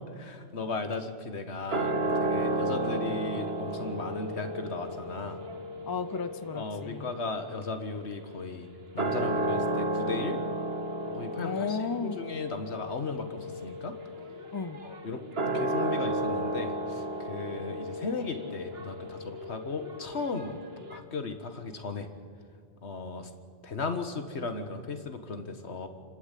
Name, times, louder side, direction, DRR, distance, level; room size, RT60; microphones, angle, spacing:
voice 1, 0.1-5.4 6.5-8.7 8.9-10.4 11.1-14.0 14.8-15.2 15.5-20.5 20.9-22.1 22.8-23.3 23.6-25.9, left 3 dB, 85° left, 8 dB, 1.8 m, -36 dB
sound 1, 1.7-8.3 8.8-21.0, right 1 dB, 70° right, 1.7 m, -33 dB
voice 2, 5.8-7.1 11.4-12.2 14.5-14.8, left 5 dB, 25° left, 13 dB, 0.6 m, -34 dB
28.5 x 12.5 x 8.4 m, 2.3 s
omnidirectional pair, 1.1 m